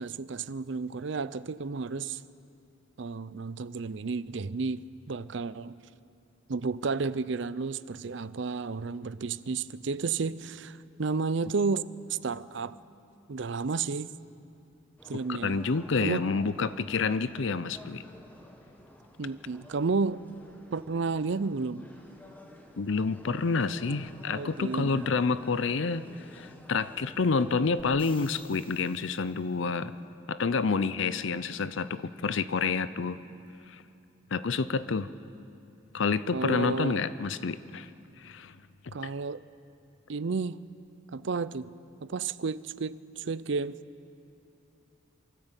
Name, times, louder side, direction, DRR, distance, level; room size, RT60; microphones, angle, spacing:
voice 1, 0.0-2.2 3.0-5.8 6.5-12.8 13.3-14.1 15.0-15.6 16.0-16.3 19.2-20.2 20.7-21.9 24.3-25.1 36.3-37.0 38.9-39.4 40.1-40.6 41.1-41.7 42.0-43.8, right 4 dB, 60° right, 0.5 m, -32 dB
sound 1, 15.0-27.8, left 1 dB, 10° left, 1.5 m, -53 dB
voice 2, 15.3-18.0 22.8-29.9 30.3-33.2 33.7-33.8 34.3-35.1 35.9-37.9 38.2-38.6, left 4 dB, 65° left, 0.6 m, -28 dB
sound 2, 27.8-29.6 33.5-33.6, left 4 dB, 25° left, 1.3 m, -53 dB
24.0 x 13.5 x 8.2 m
head